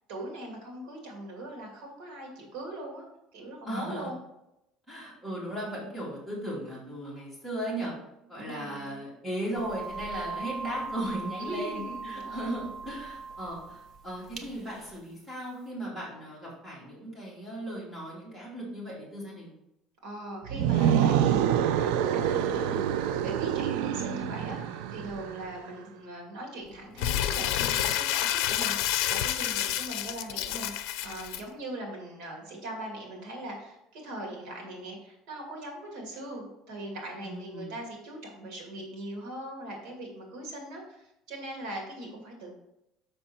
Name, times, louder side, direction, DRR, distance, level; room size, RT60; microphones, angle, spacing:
voice 1, 0.1-3.0 3.3-4.2 8.4-9.0 11.4-12.5 20.0-42.6, right 1 dB, 65° right, 0 dB, 2.5 m, -40 dB
voice 2, 3.7-4.1 4.9-7.9 8.3-19.5 37.2-37.7, right 1 dB, ahead, -8 dB, 2.7 m, -37 dB
sound 1, 9.5-15.0, right 4 dB, 35° right, 0.8 m, -40 dB
sound 2, 20.5-25.5, right 10 dB, 90° right, 0.4 m, -26 dB
Crumpling crinkling, 27.0-31.4, left 12 dB, 75° left, 0.5 m, -29 dB
6.7 x 6.1 x 4.3 m, 0.86 s
cardioid pair, 165°, 0 cm